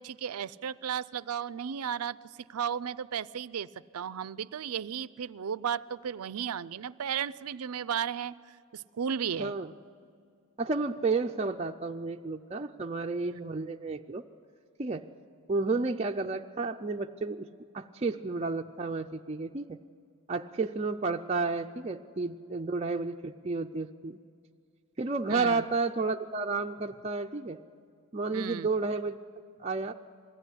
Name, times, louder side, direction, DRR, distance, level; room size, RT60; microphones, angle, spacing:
voice 1, 0.0-2.2 2.5-3.7 3.9-9.5 13.3-13.4 25.3-25.6 28.3-28.7, right 8 dB, 85° right, 17 dB, 0.5 m, -34 dB
voice 2, 9.4-9.7 10.6-14.2 14.8-15.1 15.5-17.5 17.7-19.8 20.3-24.2 25.0-27.6 28.1-29.2 29.6-29.9, right 3 dB, 30° right, 3 dB, 0.4 m, -31 dB
21.5 x 15.0 x 9.9 m, 2.2 s
head